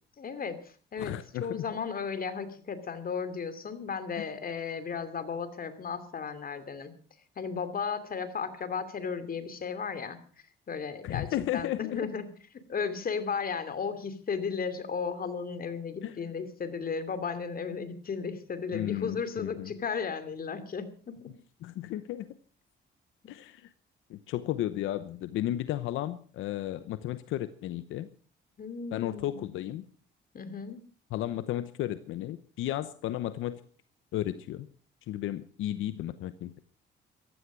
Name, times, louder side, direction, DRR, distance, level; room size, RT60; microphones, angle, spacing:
voice 1, 0.2-0.6 0.9-1.1 1.4-6.9 7.4-10.2 10.7-11.3 11.5-12.3 12.7-20.9 28.6-29.4 30.3-30.8, left 6 dB, 45° left, 10 dB, 2.7 m, -34 dB
voice 2, 1.0-1.8 4.2-4.3 11.0-12.0 16.0-16.3 18.7-19.7 21.6-22.3 23.3-23.7 24.1-28.1 28.9-29.8 31.1-33.6 34.1-34.7 35.1-36.6, left 13 dB, 90° left, 13 dB, 0.9 m, -34 dB
15.0 x 13.0 x 6.2 m, 0.43 s
cardioid pair, 90°, 20 cm